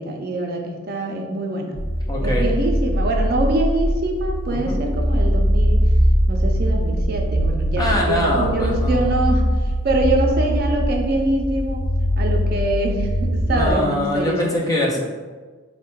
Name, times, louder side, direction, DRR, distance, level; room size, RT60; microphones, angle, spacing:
voice 1, 0.0-1.8 2.2-5.8 6.3-9.5 9.8-11.8 12.2-14.6, right 2 dB, 45° right, 2 dB, 0.4 m, -24 dB
sound 1, 1.8-13.7, equal, 90° left, 0.7 m, -21 dB
voice 2, 2.1-2.5 4.5-4.8 7.8-9.0 13.5-15.0, left 1 dB, 20° left, -3 dB, 0.5 m, -23 dB
3.5 x 2.1 x 4.4 m, 1.4 s
head